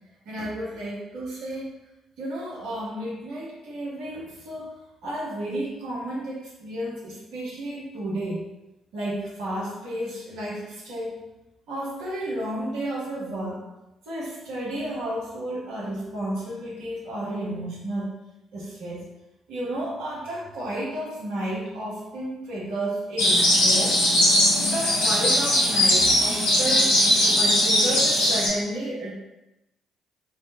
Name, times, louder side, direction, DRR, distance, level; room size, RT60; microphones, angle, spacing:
voice 1, 0.3-1.7 2.2-4.8 5.0-8.4 8.9-11.2 11.7-13.6 14.1-18.1 18.5-19.1 19.5-24.0 24.6-29.1, right 1 dB, 70° right, -5 dB, 0.8 m, -32 dB
sound 1, 23.2-28.5, left 1 dB, 80° left, 0.8 m, -20 dB
3.5 x 2.1 x 2.6 m, 0.97 s
hypercardioid pair, 45°, 0 cm